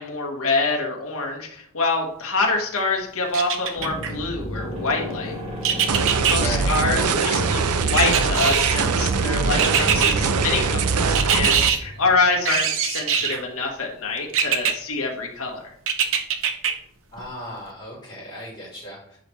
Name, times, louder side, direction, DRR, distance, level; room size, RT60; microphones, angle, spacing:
voice 1, 0.0-5.3 6.3-15.7, left 3 dB, 65° left, 0 dB, 1.3 m, -25 dB
sound 1, 3.3-4.1 5.6-6.4 7.9-8.9 9.6-10.1 11.2-11.8 12.5-13.4 14.3-14.7 15.9-16.7 17.2-17.3, right 7 dB, 60° right, 0.8 m, -22 dB
sound 2, 3.8-12.1, left 1 dB, 30° right, 2.3 m, -31 dB
sound 3, 5.9-11.7, right 5 dB, 85° right, 0.5 m, -22 dB
voice 2, 6.4-6.7 11.9-12.0 17.1-19.2, equal, 20° left, -10 dB, 3.4 m, -35 dB
10.5 x 4.9 x 3.1 m, 0.67 s
head